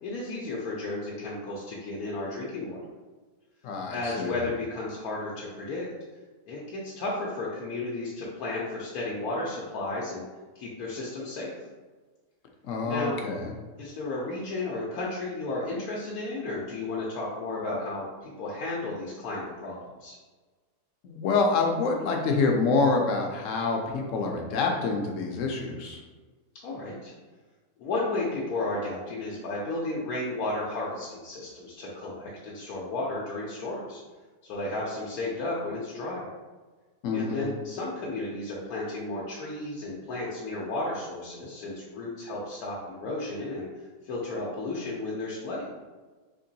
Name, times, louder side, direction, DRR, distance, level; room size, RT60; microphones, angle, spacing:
voice 1, 0.0-2.8 3.9-5.9 6.5-10.2 10.5-11.5 12.8-13.2 13.8-20.2 26.6-27.1 27.8-34.0 34.4-36.3 37.1-43.7 44.0-45.7, left 2 dB, 85° left, -5 dB, 1.2 m, -33 dB
voice 2, 3.6-4.4 12.6-13.5 21.0-26.0 37.0-37.5, left 4 dB, 70° left, 2 dB, 0.9 m, -27 dB
3.7 x 2.9 x 2.7 m, 1.3 s
omnidirectional pair, 1.5 m